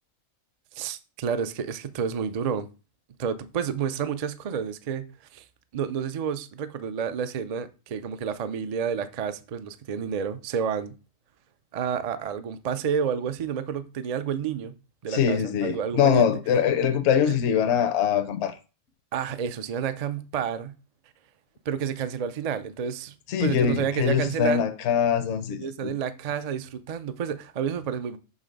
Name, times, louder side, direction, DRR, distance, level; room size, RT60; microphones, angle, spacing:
voice 1, 0.7-2.7 3.2-5.1 5.3-5.4 5.7-10.9 11.7-14.7 15.0-16.3 17.3-17.4 19.1-20.8 21.7-23.1 23.4-24.6 25.5-28.2, right 7 dB, 65° right, 0.4 m, -30 dB
voice 2, 15.1-18.5 23.3-25.9, left 8 dB, 65° left, 0.9 m, -23 dB
6.5 x 3.3 x 5.1 m
omnidirectional pair, 1.4 m